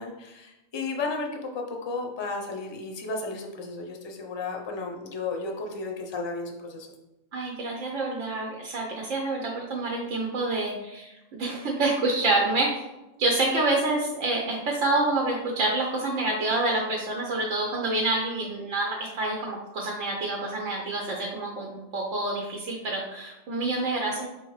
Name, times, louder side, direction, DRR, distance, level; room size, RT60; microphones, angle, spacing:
voice 1, 0.0-6.9, left 3 dB, 35° left, 2 dB, 0.4 m, -33 dB
voice 2, 7.3-12.7 13.2-24.3, right 2 dB, 80° right, -1 dB, 1.1 m, -27 dB
4.5 x 3.8 x 3.1 m, 0.98 s
omnidirectional pair, 1.3 m